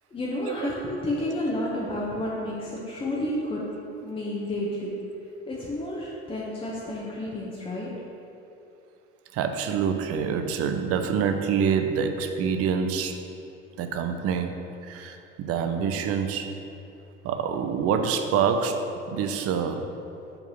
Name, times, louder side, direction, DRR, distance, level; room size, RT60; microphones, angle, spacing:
voice 1, 0.1-3.7 4.0-4.9 5.5-8.0, left 1 dB, 15° left, -5 dB, 1.1 m, -31 dB
voice 2, 9.3-13.2 13.8-14.6 14.8-16.5 17.2-19.9, right 6 dB, 45° right, 6 dB, 0.7 m, -26 dB
5.3 x 4.6 x 5.5 m, 2.8 s
figure-of-eight pair, 60°, 34 cm